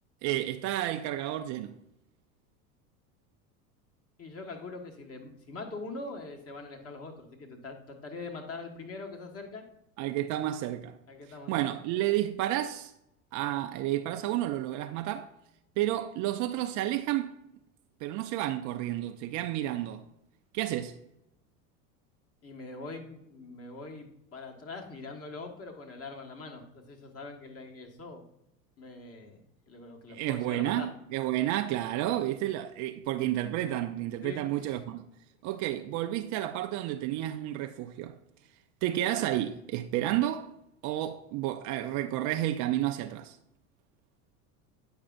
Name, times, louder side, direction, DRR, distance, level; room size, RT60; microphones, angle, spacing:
voice 1, 0.2-1.8 10.0-11.0 11.5-12.9 13.3-15.3 15.8-17.4 18.0-20.0 20.5-21.0 30.1-35.1 35.4-38.2 38.8-40.5 40.8-43.4, right 13 dB, 45° right, 0.4 m, -31 dB
voice 2, 4.2-9.6 11.1-11.8 22.4-28.3 28.8-29.4 29.7-30.9 34.2-34.8, left 3 dB, 30° left, 1.4 m, -43 dB
8.8 x 5.0 x 2.5 m
hypercardioid pair, 90°, 44 cm